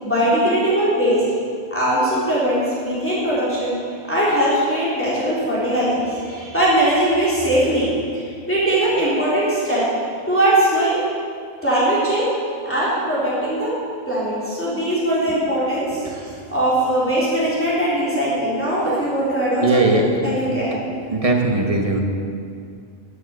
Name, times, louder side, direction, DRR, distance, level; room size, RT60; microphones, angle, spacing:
voice 1, 0.0-1.2 1.7-3.7 4.1-9.9 10.3-11.0 11.6-12.3 12.6-13.7 14.1-16.0 16.5-20.8, right 1 dB, 10° left, -9 dB, 3.4 m, -20 dB
voice 2, 16.0-16.4 19.6-20.6 21.1-22.0, right 2 dB, 25° right, 2 dB, 1.2 m, -20 dB
13.5 x 7.5 x 6.6 m, 2.3 s
omnidirectional pair, 1.4 m